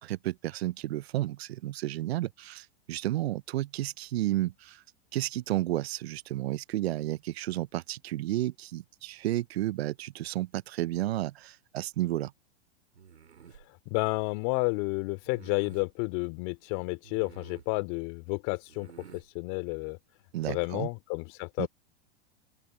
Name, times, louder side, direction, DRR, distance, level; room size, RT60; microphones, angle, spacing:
voice 1, 0.0-4.8 5.1-12.3 20.3-20.9 21.6-21.7, right 15 dB, 70° right, 0.8 m, -32 dB
sound 1, 12.9-13.7 15.2-15.9 17.0-17.8 18.7-19.3, right 7 dB, 90° right, 3.8 m, -51 dB
voice 2, 13.9-20.0 20.5-21.7, left 30 dB, 50° left, 2.9 m, -31 dB
open air
hypercardioid pair, 110°, 32 cm